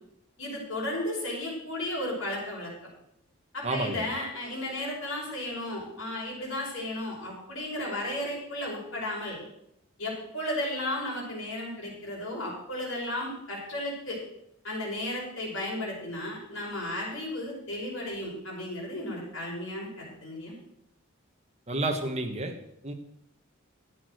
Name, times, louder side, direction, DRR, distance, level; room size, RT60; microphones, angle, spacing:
voice 1, 0.4-2.7 3.5-9.4 10.0-14.2 14.6-20.5, left 1 dB, 70° left, -3 dB, 5.6 m, -34 dB
voice 2, 3.6-4.1 21.7-22.5 22.8-22.9, right 2 dB, 30° right, 3 dB, 1.6 m, -30 dB
12.5 x 8.7 x 6.5 m, 0.78 s
head